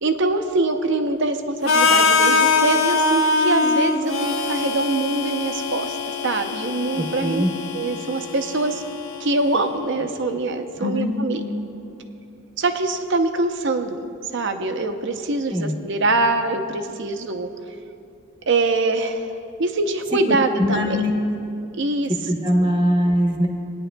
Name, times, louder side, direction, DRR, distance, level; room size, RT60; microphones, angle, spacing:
voice 1, 0.0-7.4 7.7-8.8 9.2-11.4 12.6-14.0 14.3-17.5 18.5-19.3 19.6-21.0 21.8-22.1, right 2 dB, 60° right, 7 dB, 0.6 m, -23 dB
Harmonica, 1.7-9.6, left 3 dB, 70° left, 0.6 m, -22 dB
voice 2, 7.0-7.5 10.8-11.1 15.5-15.8 20.1-20.2 20.6-21.1 22.3-23.5, equal, 25° right, 1 dB, 0.9 m, -21 dB
20.0 x 9.8 x 2.2 m, 2.7 s
head